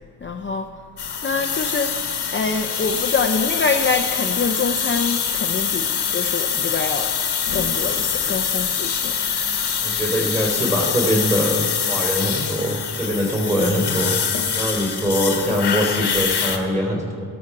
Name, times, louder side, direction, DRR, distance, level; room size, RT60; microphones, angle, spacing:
voice 1, 0.2-0.7 1.2-7.2 7.5-9.2 13.6-13.7, left 4 dB, 30° left, 5 dB, 0.5 m, -25 dB
sound 1, 1.0-16.6, left 7 dB, 90° left, 1.3 m, -24 dB
voice 2, 9.8-11.6 11.9-14.1 14.5-17.3, equal, 20° right, 0 dB, 3.1 m, -22 dB
16.0 x 13.0 x 4.8 m, 2.2 s
wide cardioid pair, 155°, 39 cm